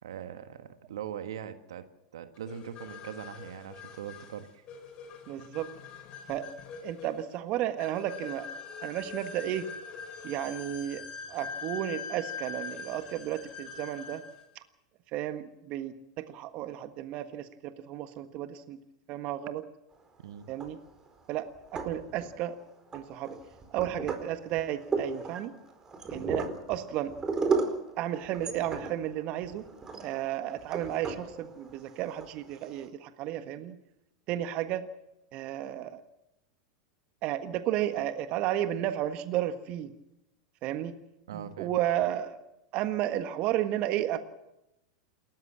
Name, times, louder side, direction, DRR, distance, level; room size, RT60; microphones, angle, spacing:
voice 1, 0.0-1.9 2.1-4.6 20.2-20.4 41.3-41.7, right 9 dB, 70° right, 9 dB, 1.6 m, -41 dB
sound 1, 2.5-14.4, left 5 dB, 40° left, 6.9 m, -43 dB
voice 2, 5.3-5.7 6.3-6.5 6.8-8.5 8.8-9.7 10.2-11.0 11.3-14.2 14.5-14.6 15.1-18.8 19.1-19.7 20.5-20.8 21.3-22.6 22.9-23.4 23.7-25.5 26.1-27.1 28.0-29.7 30.0-33.8 34.3-34.8 35.3-36.0 37.2-39.9 40.6-40.9 41.3-42.4 42.7-44.2, right 12 dB, 45° right, 9 dB, 1.5 m, -33 dB
sound 2, 20.4-21.1 21.6-22.5 22.9-32.9, right 4 dB, 20° right, 4.5 m, -35 dB
28.5 x 14.0 x 7.6 m, 0.88 s
hypercardioid pair, 90°, 3 cm